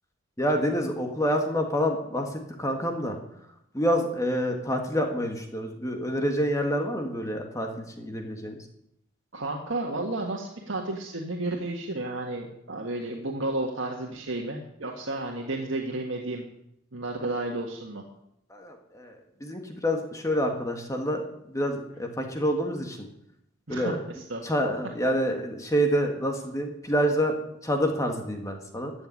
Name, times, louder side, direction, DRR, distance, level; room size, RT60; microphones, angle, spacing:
voice 1, 0.4-3.2 3.7-8.6 18.5-21.2 21.5-23.1 23.7-24.0 24.4-27.4 27.6-28.9, equal, 15° left, 3 dB, 1.7 m, -27 dB
voice 2, 9.3-16.4 16.9-18.0 23.7-24.4, right 2 dB, 75° right, 0 dB, 1.8 m, -32 dB
15.5 x 7.0 x 9.7 m, 0.77 s
head